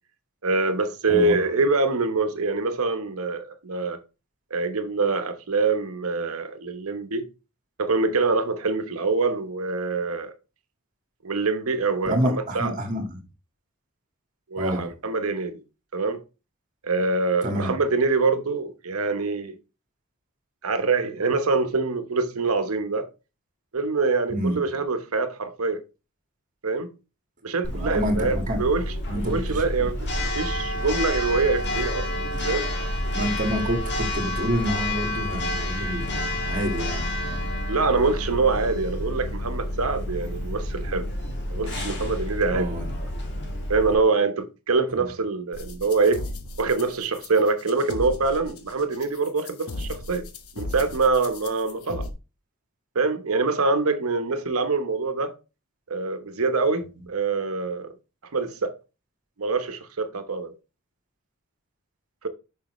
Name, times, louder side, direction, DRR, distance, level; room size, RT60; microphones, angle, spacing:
voice 1, 0.4-4.0 4.5-7.3 7.8-10.3 11.2-12.7 14.5-15.6 15.9-16.2 16.8-19.6 20.6-23.1 23.7-25.8 26.6-26.9 27.4-32.7 37.7-41.1 41.5-42.8 43.7-46.2 46.6-50.3 50.5-52.1 52.9-55.3 55.9-57.9 58.3-58.7 59.4-60.5 62.2-62.3, right 3 dB, 80° right, 1.0 m, -25 dB
voice 2, 12.0-13.2 14.6-14.9 17.4-17.7 24.3-24.6 27.7-28.6 29.1-29.7 33.1-37.5 42.5-42.9, equal, 40° right, 1.7 m, -28 dB
Church bell, 27.6-43.9, left 1 dB, 55° left, 1.6 m, -29 dB
sound 1, 45.5-52.1, left 2 dB, 90° left, 1.0 m, -36 dB
6.6 x 5.5 x 3.1 m
head